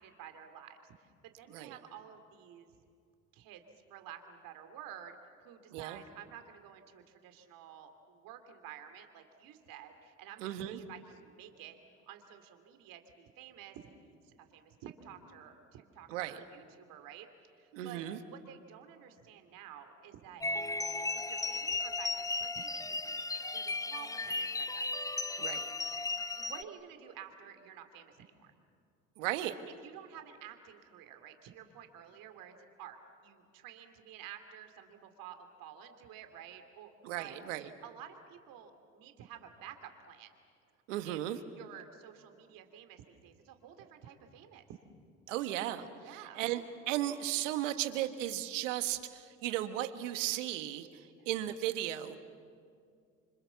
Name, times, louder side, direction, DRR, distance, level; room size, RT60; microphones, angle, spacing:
voice 1, 0.0-2.7 3.3-11.8 12.1-17.3 17.6-20.4 20.9-24.9 26.0-28.5 29.8-36.9 37.2-37.4 37.8-40.3 41.0-41.2 41.5-44.6 46.0-46.4 51.1-51.3, right 9 dB, 65° right, 7 dB, 2.9 m, -51 dB
voice 2, 10.4-10.8 16.1-16.4 17.7-18.2 25.4-25.7 29.2-29.6 37.0-37.7 40.9-41.4 45.3-50.9 51.2-52.2, right 13 dB, 85° right, 10 dB, 1.6 m, -35 dB
sound 1, 20.4-26.6, left 3 dB, 10° left, 0.7 m, -35 dB
28.5 x 26.0 x 7.1 m, 2.3 s
hypercardioid pair, 70°, 37 cm